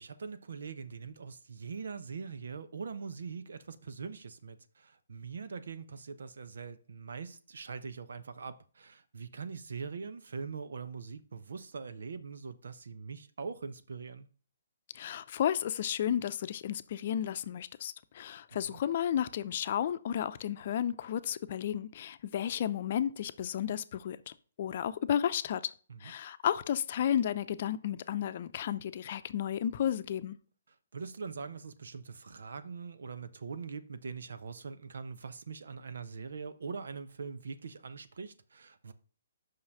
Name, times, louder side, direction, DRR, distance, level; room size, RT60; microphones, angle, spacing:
voice 1, 0.0-14.3 18.5-18.8 25.9-26.1 30.9-38.9, right 5 dB, 75° right, 0.9 m, -42 dB
voice 2, 15.0-24.3 24.6-25.7 26.0-30.4, left 10 dB, 50° left, 0.6 m, -32 dB
5.8 x 5.6 x 6.6 m
hypercardioid pair, 135°, 0 cm